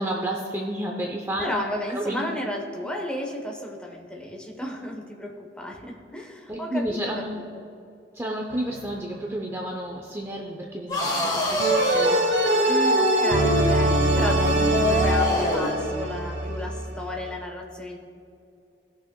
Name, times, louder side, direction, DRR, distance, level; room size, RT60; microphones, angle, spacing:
voice 1, 0.0-1.6 1.9-2.2 6.5-7.4 8.1-12.4, right 1 dB, 15° right, 0 dB, 0.6 m, -31 dB
voice 2, 1.4-7.7 12.7-18.0, left 1 dB, 5° left, 0 dB, 0.9 m, -33 dB
sound 1, 8.5-9.0 11.6-17.3, right 2 dB, 80° right, 0.8 m, -24 dB
sound 2, 10.9-15.8, left 1 dB, 20° left, 1.3 m, -25 dB
18.5 x 6.2 x 2.2 m, 2.6 s
head